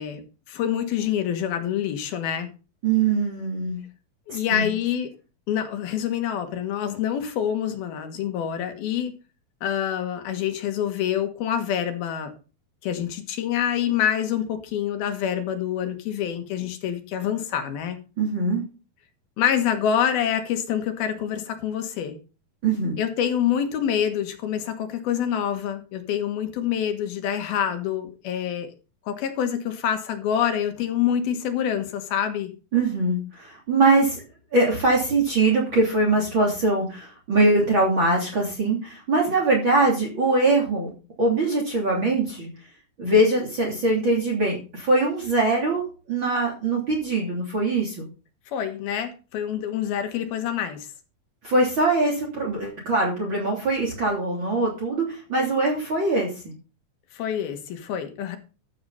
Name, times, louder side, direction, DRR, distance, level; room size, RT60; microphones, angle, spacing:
voice 1, 0.0-2.5 4.3-5.1 5.5-9.1 9.6-12.3 12.8-18.0 19.4-22.2 23.0-28.7 29.1-32.5 48.5-50.9 57.1-58.4, left 9 dB, 85° left, 3.4 m, -26 dB
voice 2, 2.8-3.8 4.3-4.7 18.2-18.6 22.6-23.0 32.7-34.2 34.5-40.9 41.2-42.5 43.0-45.8 46.1-48.1 51.4-56.5, right 2 dB, 35° right, 3.6 m, -22 dB
13.5 x 8.0 x 4.1 m
omnidirectional pair, 4.2 m